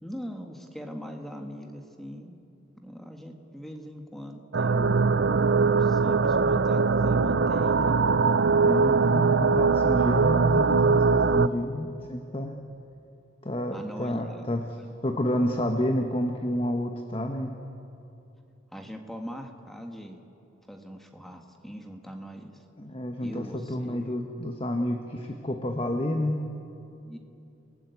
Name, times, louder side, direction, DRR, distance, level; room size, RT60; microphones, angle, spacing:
voice 1, 0.0-2.4 2.8-5.2 5.7-8.0 13.7-14.4 18.7-20.2 20.7-22.5 23.2-24.1 27.0-27.2, equal, ahead, 3 dB, 1.8 m, -41 dB
sound 1, 4.5-11.5, right 4 dB, 65° right, 0.6 m, -21 dB
voice 2, 8.6-12.5 13.4-17.5 22.8-26.4, left 1 dB, 30° left, 4 dB, 1.3 m, -30 dB
29.5 x 18.5 x 8.4 m, 2.8 s
head